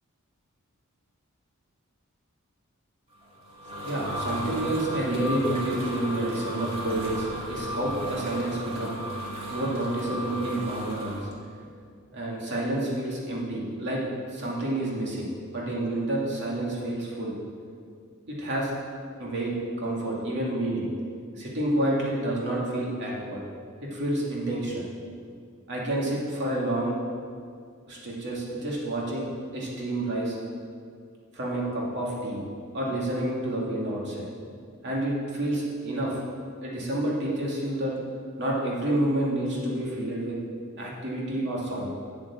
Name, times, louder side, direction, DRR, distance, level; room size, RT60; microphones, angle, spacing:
sound 1, 3.2-11.2, right 1 dB, 30° right, 2.5 m, -35 dB
voice 1, 3.8-9.0 9.5-11.2 12.1-14.0 14.3-15.3 15.5-17.3 18.3-18.7 19.2-20.9 21.4-23.4 23.8-24.8 25.7-26.9 27.9-29.3 29.5-30.4 31.3-32.4 32.7-34.3 34.8-36.2 36.6-37.9 38.4-40.4 40.8-41.9, right 1 dB, 55° right, -4 dB, 2.6 m, -29 dB
8.5 x 7.7 x 7.2 m, 2.2 s
head